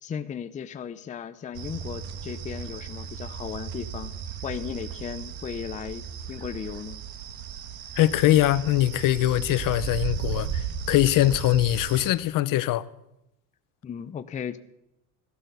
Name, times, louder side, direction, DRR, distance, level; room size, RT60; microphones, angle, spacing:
voice 1, 0.0-4.1 4.4-7.0 13.8-14.6, left 8 dB, 20° left, 0.5 m, -36 dB
sound 1, 1.5-12.1, right 8 dB, 65° right, 1.6 m, -35 dB
voice 2, 8.0-12.9, left 14 dB, 55° left, 0.8 m, -22 dB
15.5 x 12.5 x 6.9 m
cardioid pair, 160°, 38 cm